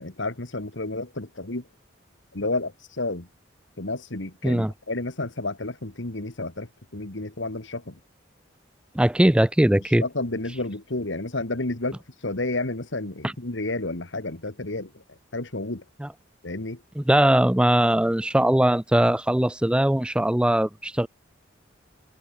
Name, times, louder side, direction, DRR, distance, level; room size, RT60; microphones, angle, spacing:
voice 1, 0.0-1.7 2.3-3.3 3.8-8.0 10.0-15.0 15.3-15.8 16.4-16.8, left 2 dB, 70° left, 2.1 m, -31 dB
voice 2, 8.9-10.0 13.2-13.3 16.0-16.1 17.0-21.1, right 1 dB, 5° right, 0.3 m, -20 dB
head